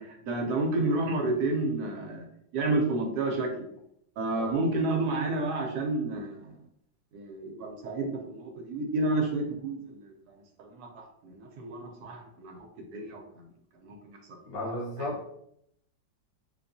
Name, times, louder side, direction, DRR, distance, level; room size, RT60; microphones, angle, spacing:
voice 1, 0.0-2.3 2.5-3.7 4.2-6.5 7.1-10.1 10.6-13.2 13.8-14.2 15.0-15.1, right 2 dB, 70° right, 2 dB, 1.0 m, -30 dB
voice 2, 14.5-15.4, left 1 dB, 90° left, -4 dB, 1.8 m, -35 dB
3.7 x 2.6 x 2.6 m, 0.74 s
omnidirectional pair, 1.9 m